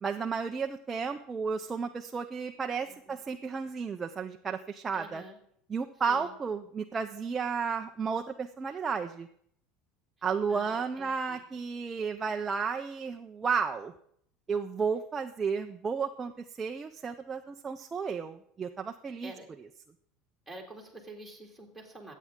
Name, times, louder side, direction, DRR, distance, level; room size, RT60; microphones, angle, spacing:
voice 1, 0.0-5.2 5.7-9.3 10.2-13.9 14.5-16.3 16.6-19.3, right 5 dB, 15° right, 5 dB, 0.4 m, -33 dB
voice 2, 4.9-5.4 6.1-6.3 10.5-11.4 19.2-19.5 20.5-22.1, right 2 dB, ahead, -1 dB, 2.1 m, -48 dB
24.0 x 8.3 x 3.6 m, 0.68 s
cardioid pair, 170°, 0 cm